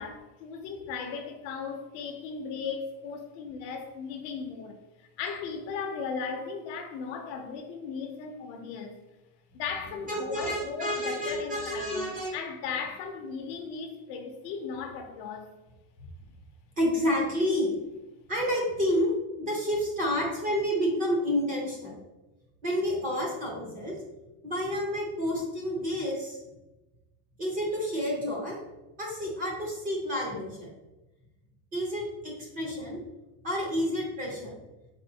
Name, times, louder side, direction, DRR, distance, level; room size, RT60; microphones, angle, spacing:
voice 1, 0.0-9.0 9.5-15.5, left 5 dB, 55° left, 0.6 m, -37 dB
voice 2, 10.1-12.3 16.8-17.7 18.3-22.0 22.6-24.0 24.4-26.4 27.4-28.6 29.0-30.7 31.7-33.0 33.4-34.5, equal, 20° right, 0.6 m, -29 dB
4.2 x 3.9 x 2.7 m
cardioid pair, 180°, 43 cm